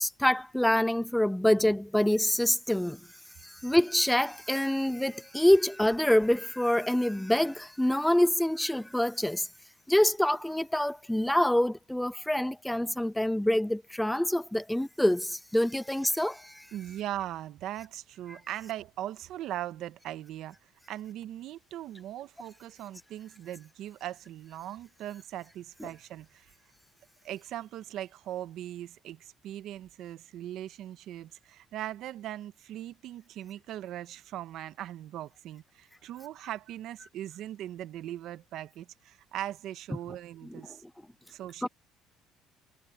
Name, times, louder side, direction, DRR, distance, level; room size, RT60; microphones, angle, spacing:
voice 1, 0.0-3.0 3.4-9.5 9.9-16.7 25.8-25.9 40.5-40.6 41.6-41.7, left 1 dB, 5° left, 0.4 m, -26 dB
voice 2, 16.7-20.6 20.9-26.5 27.2-40.8 41.3-41.7, right 12 dB, 65° right, 0.9 m, -40 dB
cardioid pair, 120°, 0 cm